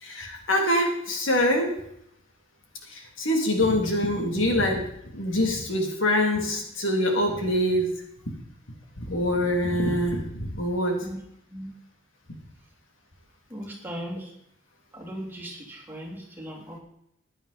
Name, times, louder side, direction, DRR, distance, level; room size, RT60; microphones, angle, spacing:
voice 1, 0.0-1.7 2.9-7.9 9.0-11.0, left 1 dB, 75° left, 1 dB, 2.9 m, -25 dB
voice 2, 13.5-14.3 14.9-16.8, equal, 10° right, -4 dB, 3.3 m, -38 dB
15.0 x 10.0 x 4.2 m, 0.76 s
head